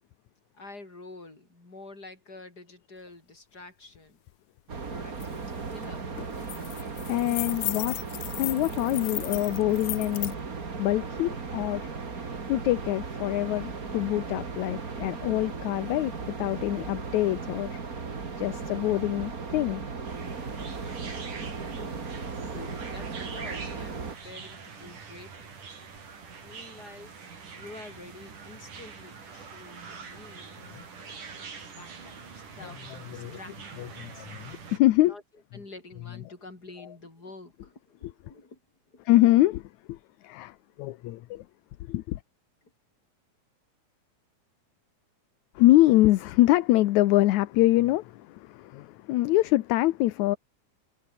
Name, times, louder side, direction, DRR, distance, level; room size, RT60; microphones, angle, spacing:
voice 1, 0.5-4.2 4.9-6.1 21.5-22.2 22.9-25.7 26.4-27.1 27.6-31.5 31.8-34.3 35.0-35.2 35.5-38.6 38.9-39.3, left 2 dB, 30° left, 6.5 m, -48 dB
sound 1, 4.7-24.1, right 4 dB, 30° right, 2.6 m, -36 dB
sound 2, 5.2-5.3 5.6-5.9 6.2-10.3, left 20 dB, 90° left, 1.5 m, -35 dB
voice 2, 6.8-8.0 8.4-10.4 10.8-11.9 12.5-16.1 16.4-17.8 18.4-19.8 22.5-22.7 32.6-33.4 33.8-35.1 39.1-39.6 39.9-40.0 40.2-41.5 41.8-42.2 45.6-50.4, left 16 dB, 75° left, 2.1 m, -25 dB
sound 3, 20.1-34.8, right 5 dB, 80° right, 6.1 m, -44 dB
omnidirectional pair, 3.6 m